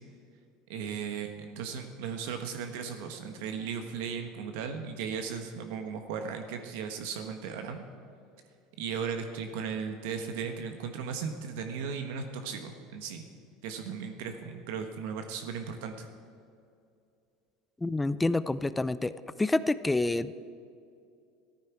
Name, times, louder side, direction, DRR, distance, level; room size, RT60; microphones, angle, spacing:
voice 1, 0.7-7.8 8.8-13.3 13.6-16.1, right 6 dB, 75° right, 6 dB, 1.2 m, -36 dB
voice 2, 17.8-19.1 19.4-20.4, left 2 dB, 10° left, 16 dB, 0.4 m, -28 dB
15.0 x 13.5 x 4.6 m, 2.5 s
supercardioid pair, 130°, 0 cm